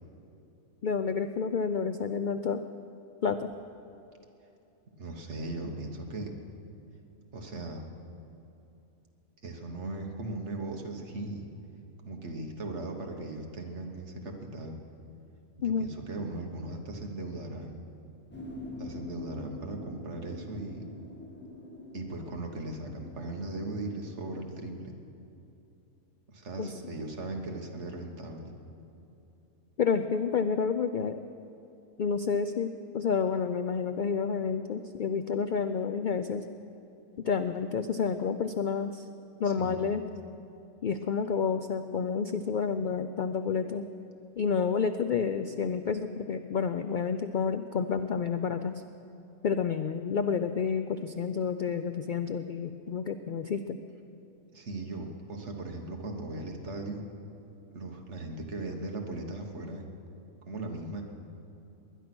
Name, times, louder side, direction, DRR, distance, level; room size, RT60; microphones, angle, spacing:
voice 1, 0.8-2.6 3.2-3.5 15.6-15.9 26.6-27.0 29.8-31.2 32.0-36.5 37.2-39.1 39.4-40.0 40.8-43.9 44.4-48.8 49.4-53.8, left 6 dB, 80° left, 9 dB, 0.4 m, -29 dB
voice 2, 5.0-6.4 7.3-7.9 9.4-11.5 12.0-14.8 15.6-17.8 18.8-20.9 21.9-25.0 26.3-28.5 39.4-39.8 54.5-57.1 57.7-59.8 60.5-61.0, right 2 dB, 55° right, 3 dB, 1.7 m, -38 dB
sound 1, 18.3-24.8, left 2 dB, 10° left, 1.7 m, -45 dB
20.5 x 11.0 x 6.1 m, 2.8 s
omnidirectional pair, 1.4 m